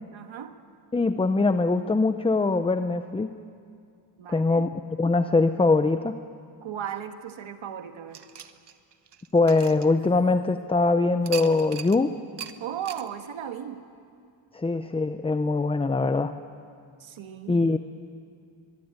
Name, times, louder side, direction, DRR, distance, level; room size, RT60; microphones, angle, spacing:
voice 1, 0.1-0.6 4.2-4.7 6.6-8.2 12.6-13.8 17.0-17.8, right 9 dB, 70° right, 7 dB, 1.6 m, -36 dB
voice 2, 0.9-3.3 4.3-4.7 5.0-6.2 9.3-12.2 14.5-16.3 17.5-17.8, left 3 dB, 10° left, 10 dB, 0.5 m, -22 dB
sound 1, 8.1-10.5 11.2-12.0 12.4-12.5 12.9-13.1, right 9 dB, 55° right, 1.2 m, -40 dB
23.0 x 21.5 x 8.9 m, 2.4 s
wide cardioid pair, 130°, 50 cm